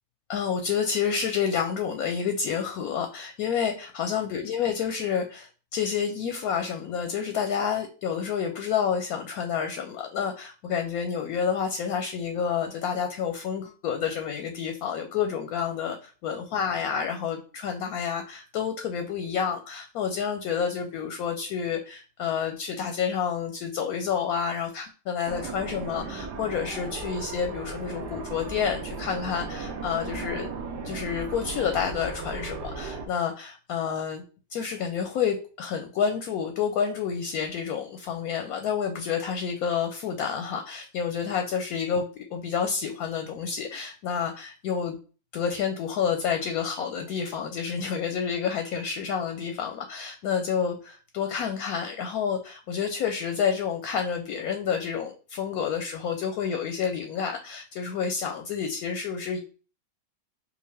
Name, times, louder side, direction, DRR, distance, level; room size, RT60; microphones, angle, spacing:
voice 1, 0.3-30.5 30.8-34.2 34.5-42.0 42.3-45.0 45.3-59.4, left 7 dB, 70° left, 5 dB, 0.9 m, -29 dB
sound 1, 25.3-33.1, right 4 dB, 75° right, 1.3 m, -36 dB
4.8 x 2.4 x 3.3 m, 0.37 s
omnidirectional pair, 1.9 m